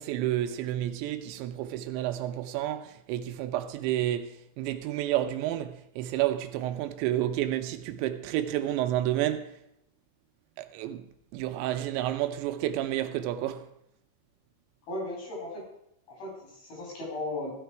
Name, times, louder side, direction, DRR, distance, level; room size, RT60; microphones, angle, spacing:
voice 1, 0.0-9.5 10.6-11.1 11.3-13.7, right 13 dB, 85° right, 2.9 m, -30 dB
voice 2, 14.9-15.6 16.1-17.5, left 2 dB, 55° left, 5.8 m, -36 dB
15.0 x 6.6 x 4.5 m
omnidirectional pair, 5.2 m